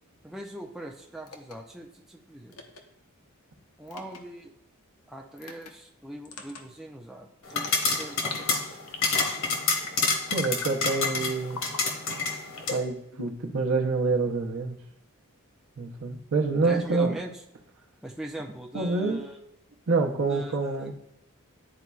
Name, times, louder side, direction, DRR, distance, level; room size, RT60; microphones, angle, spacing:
voice 1, 0.2-2.6 3.8-4.5 5.1-8.8 16.6-17.4 18.0-19.4 20.3-20.9, right 1 dB, ahead, 0 dB, 0.4 m, -41 dB
sound 1, 1.3-1.5 2.5-2.8 3.9-4.2 5.4-5.7 6.3-6.6 7.5-8.5 8.9-9.3 9.6-10.0 10.4-10.7 11.5-11.8 12.6-13.5, left 5 dB, 85° left, 0.8 m, -40 dB
sound 2, 7.5-12.8, left 4 dB, 60° left, 1.1 m, -28 dB
voice 2, 10.3-11.6 12.7-14.8 15.8-17.1 18.7-19.2 19.9-20.9, right 3 dB, 65° right, 2 dB, 0.7 m, -27 dB
10.5 x 4.1 x 2.3 m, 0.79 s
head